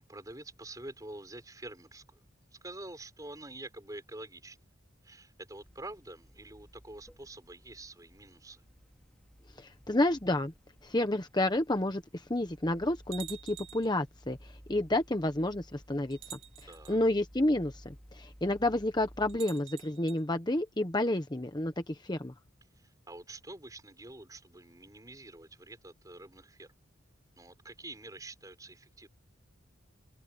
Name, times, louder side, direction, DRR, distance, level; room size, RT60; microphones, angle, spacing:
voice 1, 0.0-2.2 2.5-4.6 5.0-8.6 16.6-17.0 22.7-26.7 27.3-29.1, right 2 dB, 20° right, 5.9 m, -47 dB
sound 1, 5.6-19.4, equal, 5° left, 4.2 m, -56 dB
voice 2, 9.6-10.5 10.8-16.2 16.9-22.3, left 1 dB, 20° left, 1.1 m, -30 dB
sound 2, 13.1-14.0 15.1-15.2 16.1-17.0 19.3-20.2, right 11 dB, 80° right, 1.7 m, -47 dB
head